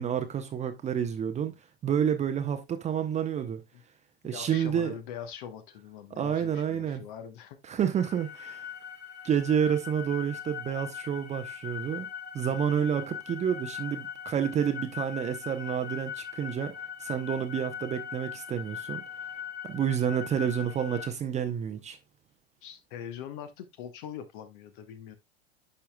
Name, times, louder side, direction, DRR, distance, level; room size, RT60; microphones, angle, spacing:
voice 1, 0.0-1.6 1.8-3.6 4.2-4.9 6.2-7.1 7.7-8.7 9.2-12.1 12.3-16.7 17.0-19.0 19.6-22.0, right 8 dB, 20° right, 0.7 m, -29 dB
voice 2, 4.2-7.6 22.6-25.2, left 9 dB, 50° left, 1.0 m, -42 dB
sound 1, 7.9-21.1, left 8 dB, 75° left, 1.5 m, -40 dB
10.0 x 5.7 x 2.2 m
figure-of-eight pair, 95°, 33 cm